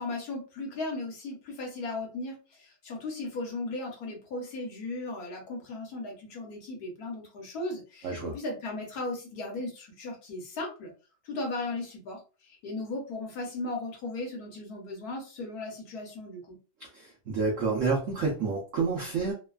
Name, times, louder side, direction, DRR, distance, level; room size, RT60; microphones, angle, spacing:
voice 1, 0.0-10.9 11.2-16.6, left 2 dB, 60° left, 0 dB, 1.2 m, -36 dB
voice 2, 8.0-8.4 16.9-19.3, right 4 dB, 90° right, -1 dB, 0.6 m, -29 dB
3.1 x 2.2 x 2.3 m, 0.34 s
omnidirectional pair, 2.1 m